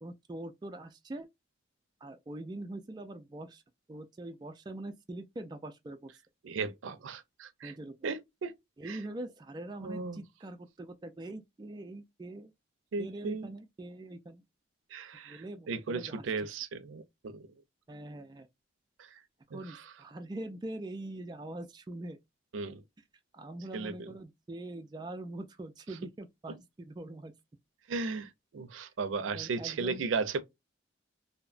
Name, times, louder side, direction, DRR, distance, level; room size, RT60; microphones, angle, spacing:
voice 1, 0.0-1.3 2.0-3.6 3.9-6.2 7.6-7.9 8.8-12.5 13.0-14.4 15.2-16.2 17.9-18.5 19.5-22.2 23.3-27.3 29.3-30.0, right 1 dB, 20° right, 0.3 m, -43 dB
voice 2, 6.4-7.7 8.0-8.5 8.8-9.0 9.8-10.2 12.9-13.5 14.9-17.5 19.0-19.2 19.5-19.8 22.5-22.8 23.7-24.1 27.9-30.4, right 4 dB, 90° right, 0.4 m, -36 dB
2.8 x 2.1 x 2.3 m
head